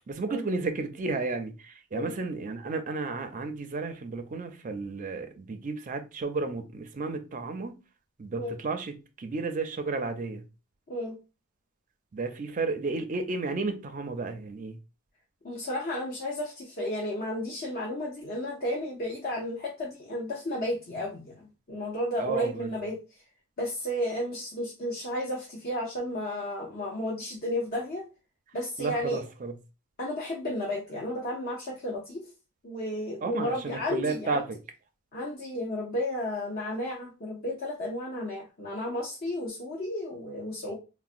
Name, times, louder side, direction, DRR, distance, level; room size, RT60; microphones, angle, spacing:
voice 1, 0.1-7.7 8.2-10.4 12.1-14.8 22.2-22.7 28.8-29.5 33.2-34.6, right 3 dB, 35° right, 0.4 m, -32 dB
voice 2, 15.4-23.0 23.6-28.0 28.5-29.2 30.0-32.2 32.6-34.4 35.1-40.7, left 1 dB, 40° left, 0.6 m, -33 dB
3.9 x 2.1 x 2.5 m
head